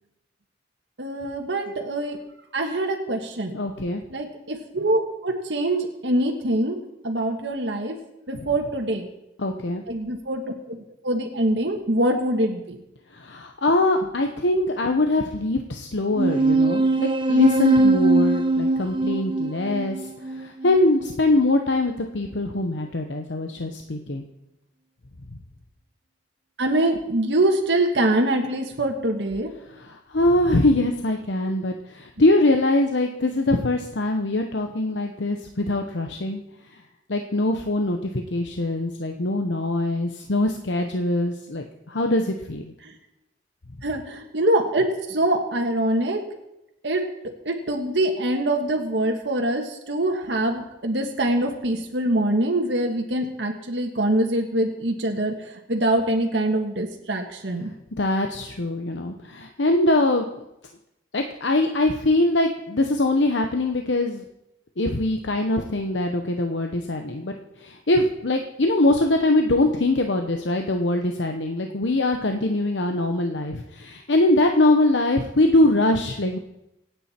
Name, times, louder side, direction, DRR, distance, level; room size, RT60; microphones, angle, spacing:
voice 1, 1.0-2.2 2.5-3.6 4.1-6.8 7.0-7.9 8.3-9.1 9.9-10.4 10.7-10.8 11.0-12.6 26.6-29.5 42.8-42.9 43.8-46.2 46.8-47.0 47.4-55.3 55.7-57.7, right 1 dB, 75° right, 2 dB, 1.7 m, -24 dB
voice 2, 3.5-4.0 9.4-9.8 13.1-24.2 25.3-25.4 29.7-36.4 36.7-36.8 37.1-42.7 58.0-60.3 61.1-64.2 64.8-76.4, left 2 dB, 75° left, 4 dB, 1.0 m, -23 dB
sound 1, 16.2-21.1, right 2 dB, 25° right, 1.0 m, -21 dB
25.5 x 9.1 x 4.4 m, 0.89 s
head